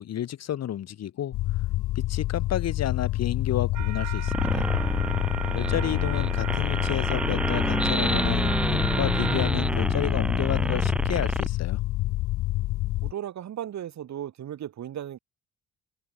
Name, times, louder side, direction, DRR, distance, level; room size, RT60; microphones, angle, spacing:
voice 1, 0.0-1.4 1.9-4.7 5.5-11.8, left 11 dB, 60° left, 1.3 m, -31 dB
sound 1, 1.3-13.1, left 17 dB, 90° left, 0.8 m, -28 dB
sound 2, 3.7-9.5, right 15 dB, 85° right, 1.2 m, -36 dB
sound 3, 4.3-11.5, right 1 dB, 5° right, 2.2 m, -28 dB
voice 2, 13.0-15.2, right 10 dB, 65° right, 4.8 m, -36 dB
open air
cardioid pair, 110°, 30 cm